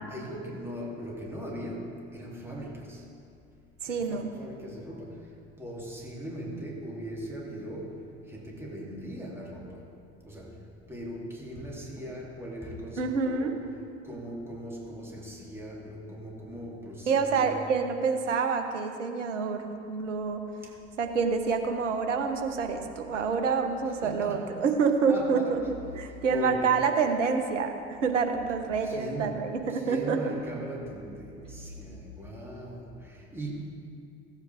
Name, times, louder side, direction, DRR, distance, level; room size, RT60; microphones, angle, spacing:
voice 1, 0.1-3.0 3.8-9.9 10.2-10.6 10.9-13.6 14.0-17.5 20.6-20.7 24.0-24.5 25.1-25.5 26.3-26.7 28.8-29.4 29.7-33.6, equal, 5° right, -4 dB, 3.0 m, -39 dB
voice 2, 3.8-4.3 13.0-13.5 17.1-20.4 21.0-25.6 25.9-30.2, right 5 dB, 75° right, 6 dB, 1.2 m, -27 dB
16.5 x 8.9 x 3.6 m, 2.4 s
figure-of-eight pair, 65°, 37 cm